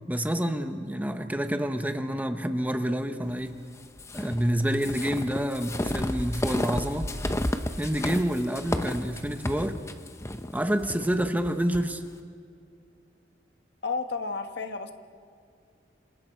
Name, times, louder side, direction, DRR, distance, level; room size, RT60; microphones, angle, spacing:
voice 1, 0.0-3.6 4.1-7.1 7.8-9.8 10.5-12.0, equal, 10° right, 7 dB, 1.0 m, -28 dB
sound 1, 4.0-11.9, left 1 dB, 15° left, 0.8 m, -32 dB
voice 2, 13.8-14.9, left 4 dB, 65° left, 7 dB, 1.4 m, -31 dB
27.5 x 27.0 x 4.5 m, 2.3 s
head